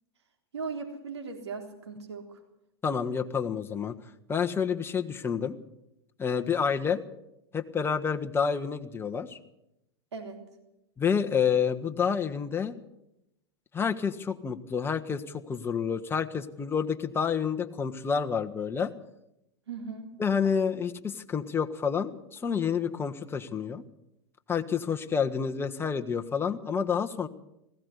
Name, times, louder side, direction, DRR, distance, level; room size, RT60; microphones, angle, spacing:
voice 1, 0.5-2.4 10.1-10.4 19.7-20.1, right 4 dB, 85° right, 4 dB, 3.7 m, -38 dB
voice 2, 2.8-3.9 4.3-5.6 6.2-7.0 7.5-9.4 11.0-12.8 13.7-18.9 20.2-23.8 24.5-27.3, left 6 dB, 15° left, 6 dB, 1.5 m, -29 dB
19.5 x 16.0 x 8.2 m, 0.85 s
hypercardioid pair, 110°, 14 cm